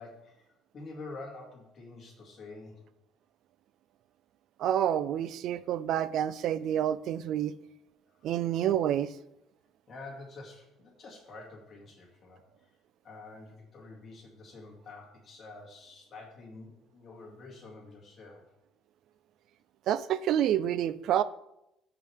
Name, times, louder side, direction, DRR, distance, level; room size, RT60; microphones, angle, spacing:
voice 1, 0.0-2.9 8.1-8.2 9.9-12.7 13.0-18.4, left 3 dB, 30° left, 2.4 m, -47 dB
voice 2, 4.6-7.5 8.2-9.1 19.9-21.2, right 10 dB, 55° right, 0.4 m, -28 dB
14.0 x 4.7 x 3.5 m
cardioid pair, 165°, 0 cm